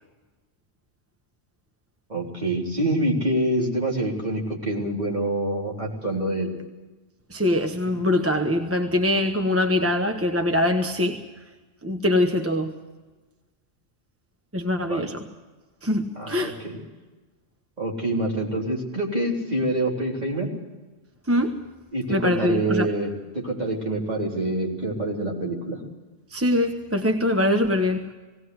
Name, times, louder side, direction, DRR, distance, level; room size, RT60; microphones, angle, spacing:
voice 1, 2.1-6.5 14.9-15.1 16.2-16.8 17.8-20.5 21.9-25.8, right 1 dB, 35° right, -2 dB, 3.9 m, -26 dB
voice 2, 7.3-11.2 11.8-12.7 14.5-15.2 15.8-16.6 21.3-21.6 22.1-22.9 26.3-28.0, left 1 dB, 10° right, 5 dB, 1.0 m, -23 dB
19.0 x 18.0 x 7.9 m, 1.2 s
omnidirectional pair, 1.3 m